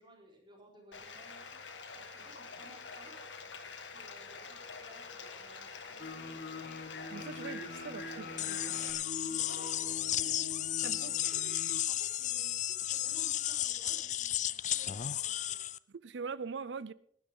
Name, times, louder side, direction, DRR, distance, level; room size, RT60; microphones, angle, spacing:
voice 1, 0.0-3.2 3.8-6.6 9.2-10.6 10.9-15.6, right 1 dB, 25° right, 4.3 m, -58 dB
Bathtub (filling or washing), 0.9-8.9, left 4 dB, 90° left, 1.7 m, -47 dB
sound 1, 6.0-11.8, left 4 dB, 60° left, 1.3 m, -44 dB
voice 2, 7.1-8.8 10.8-11.1 15.9-16.9, right 5 dB, 70° right, 0.5 m, -42 dB
sound 2, 8.4-15.8, left 12 dB, 40° left, 0.4 m, -34 dB
19.0 x 12.0 x 3.7 m
head